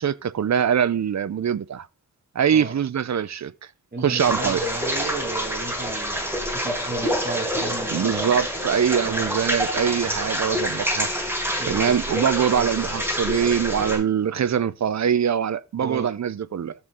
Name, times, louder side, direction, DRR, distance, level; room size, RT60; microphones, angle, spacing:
voice 1, 0.0-1.9 2.3-3.5 4.0-4.6 7.9-11.1 11.7-16.7, right 8 dB, 65° right, 0.6 m, -23 dB
voice 2, 3.9-8.2 9.0-9.3 11.6-12.0 12.5-12.7 15.8-16.1, right 4 dB, 35° right, 2.0 m, -34 dB
sound 1, 4.2-14.0, equal, 5° right, 6.1 m, -27 dB
15.0 x 5.2 x 3.6 m
wide cardioid pair, 120°, 30 cm